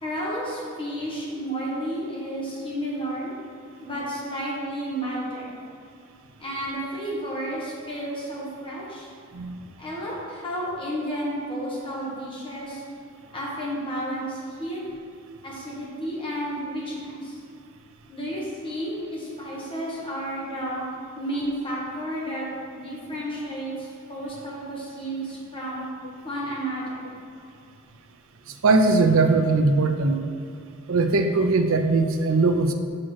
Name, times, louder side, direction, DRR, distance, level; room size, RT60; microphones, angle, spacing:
voice 1, 0.0-3.3 3.8-5.6 6.4-9.1 9.8-12.8 13.3-14.8 15.4-17.4 18.1-20.8 21.2-25.9 26.2-27.1, right 1 dB, 25° left, -5 dB, 1.7 m, -32 dB
voice 2, 28.6-30.2 30.9-32.7, right 3 dB, 70° right, 6 dB, 0.6 m, -20 dB
6.1 x 6.0 x 4.7 m, 2.3 s
head